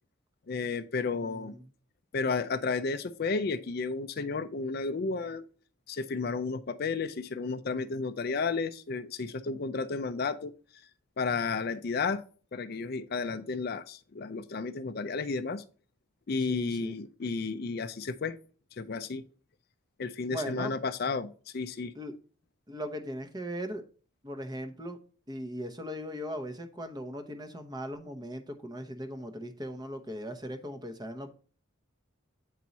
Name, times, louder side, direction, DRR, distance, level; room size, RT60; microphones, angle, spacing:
voice 1, 0.5-1.6 2.1-5.4 5.9-10.6 11.2-12.2 12.5-15.6 16.3-18.4 18.8-19.2 20.0-21.9, left 4 dB, 45° left, 0.4 m, -32 dB
voice 2, 1.2-1.6 16.5-17.0 20.3-20.7 21.9-22.1 22.7-23.8 24.2-25.0 25.3-31.3, equal, 20° right, 0.8 m, -38 dB
8.4 x 4.5 x 4.0 m
head